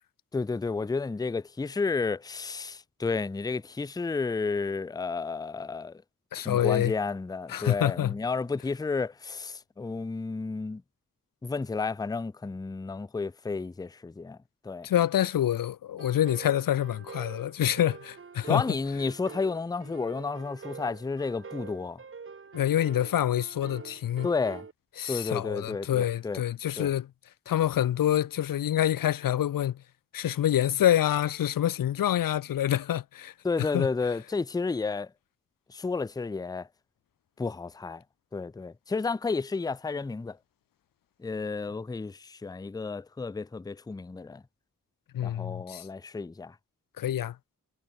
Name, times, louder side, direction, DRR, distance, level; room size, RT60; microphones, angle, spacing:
voice 1, 0.3-6.0 6.4-10.8 11.4-14.4 14.6-14.9 18.5-22.0 24.2-24.7 25.1-26.4 26.8-26.9 33.4-35.1 35.7-36.7 37.4-38.0 38.3-40.4 41.2-44.4 45.2-46.5, left 4 dB, 10° left, 0.4 m, -31 dB
voice 2, 6.3-6.9 7.5-8.2 14.8-18.6 22.5-24.3 25.0-27.1 27.5-29.8 30.1-33.3 33.6-33.9 45.1-45.9 47.0-47.4, left 11 dB, 90° left, 0.5 m, -26 dB
sound 1, 16.0-24.7, right 5 dB, 40° right, 0.9 m, -45 dB
wide cardioid pair, 100°, 33 cm